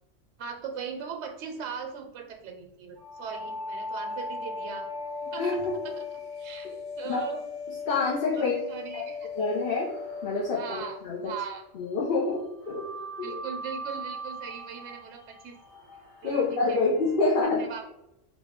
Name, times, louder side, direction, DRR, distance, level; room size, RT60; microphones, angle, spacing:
voice 1, 0.4-4.9 5.3-6.1 6.4-7.4 8.3-9.3 10.5-11.0 11.2-11.6 13.2-15.5 16.2-16.8 17.4-17.8, right 6 dB, 70° right, 3 dB, 0.9 m, -39 dB
sound 1, 3.0-11.8 12.6-17.4, left 3 dB, 20° left, 1.1 m, -38 dB
voice 2, 7.9-8.5 8.9-9.0 9.3-9.9 10.2-11.3 11.7-12.8 13.2-13.4 16.2-17.6, left 3 dB, 50° left, -5 dB, 1.0 m, -27 dB
4.1 x 2.3 x 3.6 m, 0.85 s
omnidirectional pair, 1.3 m